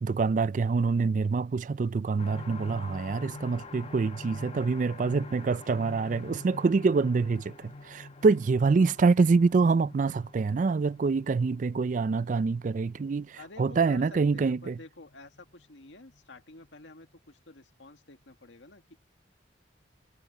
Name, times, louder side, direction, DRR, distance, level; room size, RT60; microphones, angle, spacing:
voice 1, 0.0-7.5 7.9-13.3 13.6-14.7, right 4 dB, 45° right, 0.3 m, -25 dB
sound 1, 2.2-15.7 16.1-16.2 16.6-16.7, left 3 dB, 35° left, 1.1 m, -46 dB
voice 2, 13.4-19.0, left 3 dB, 85° left, 2.0 m, -50 dB
head